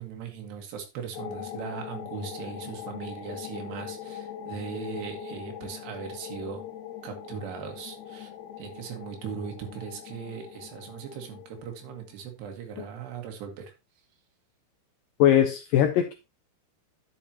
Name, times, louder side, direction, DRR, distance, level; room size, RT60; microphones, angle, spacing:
voice 1, 0.0-6.6 7.0-8.3 8.6-13.7, right 7 dB, 80° right, 3 dB, 3.8 m, -39 dB
sound 1, 1.1-12.3, left 8 dB, 60° left, 2.4 m, -41 dB
voice 2, 15.2-16.1, left 10 dB, 90° left, 8 dB, 1.9 m, -21 dB
11.0 x 7.3 x 2.9 m, 0.25 s
omnidirectional pair, 4.8 m